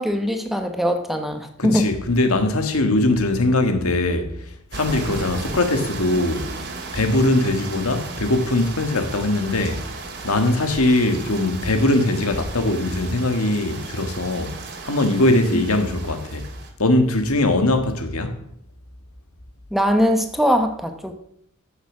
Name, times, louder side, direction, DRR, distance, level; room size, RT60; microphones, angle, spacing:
voice 1, 0.0-1.9 19.7-21.1, equal, ahead, 1.1 m, -21 dB
voice 2, 1.6-4.3 4.7-6.5 6.9-9.8 10.2-14.6 14.8-16.5 16.8-18.3, left 2 dB, 75° left, 1.7 m, -21 dB
sound 1, 4.7-16.7, right 3 dB, 55° right, 2.4 m, -35 dB
14.5 x 7.1 x 6.2 m
head